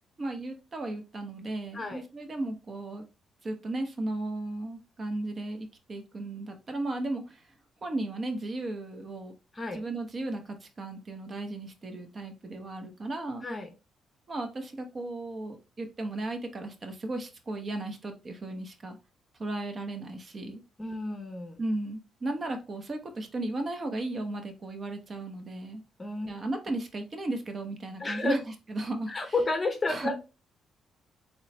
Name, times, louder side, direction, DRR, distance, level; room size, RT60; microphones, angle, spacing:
voice 1, 0.2-3.0 3.4-7.4 7.8-9.3 9.7-13.5 14.3-19.0 19.4-20.6 21.6-25.8 26.3-28.4 28.7-29.3 29.9-30.2, right 2 dB, 35° right, 5 dB, 0.9 m, -35 dB
voice 2, 20.8-21.6 26.0-26.3 28.0-28.3 29.1-30.2, left 2 dB, 25° left, 5 dB, 0.9 m, -31 dB
4.0 x 3.1 x 3.2 m, 0.28 s
cardioid pair, 90°, 0 cm